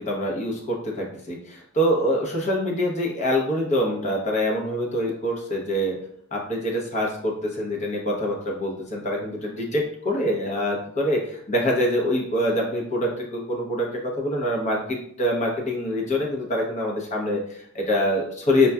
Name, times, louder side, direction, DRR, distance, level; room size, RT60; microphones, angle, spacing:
voice 1, 0.0-6.0 6.3-18.7, equal, 35° left, -1 dB, 0.8 m, -25 dB
5.2 x 2.3 x 2.3 m, 0.66 s
head